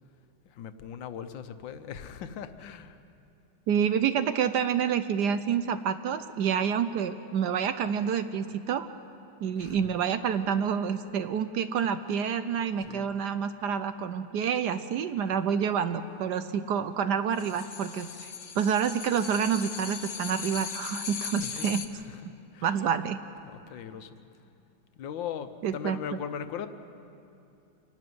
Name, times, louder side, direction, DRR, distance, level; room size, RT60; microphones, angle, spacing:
voice 1, 0.5-3.0 9.6-9.9 12.8-13.1 21.4-22.9 23.4-24.2 25.0-26.7, left 8 dB, 75° left, 10 dB, 1.6 m, -39 dB
voice 2, 3.7-8.9 9.4-18.3 18.6-21.8 22.6-23.2 25.6-26.0, right 7 dB, 65° right, 10 dB, 1.1 m, -28 dB
sound 1, 17.3-21.9, left 6 dB, 50° left, 1.0 m, -38 dB
26.5 x 12.0 x 9.4 m, 2.7 s
omnidirectional pair, 2.1 m